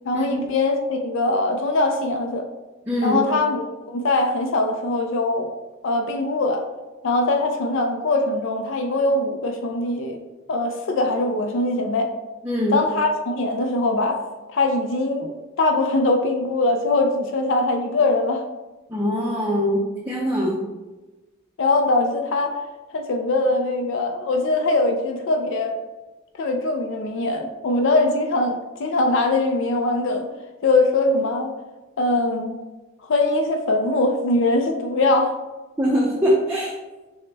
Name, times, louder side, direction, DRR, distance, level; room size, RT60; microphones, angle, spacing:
voice 1, 0.0-2.4 3.0-5.5 5.8-6.6 7.0-10.2 10.5-12.1 12.7-14.2 14.5-18.4 21.6-22.6 22.9-25.7 26.4-30.3 30.6-31.5 32.0-32.6 33.0-35.3, left 2 dB, 65° left, 4 dB, 0.4 m, -22 dB
voice 2, 2.9-3.2 12.4-12.8 18.9-20.6 35.8-36.7, equal, 10° right, -5 dB, 0.5 m, -22 dB
6.3 x 2.1 x 3.3 m, 1.2 s
head